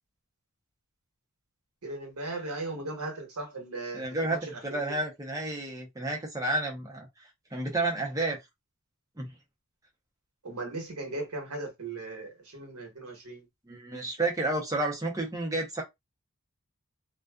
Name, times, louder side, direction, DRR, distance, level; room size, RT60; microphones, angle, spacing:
voice 1, 1.8-5.0 10.4-13.4, right 2 dB, 90° right, 1.1 m, -38 dB
voice 2, 3.9-7.1 7.5-8.4 9.2-9.3 13.7-15.8, right 2 dB, 15° right, 0.7 m, -31 dB
2.5 x 2.3 x 2.3 m
head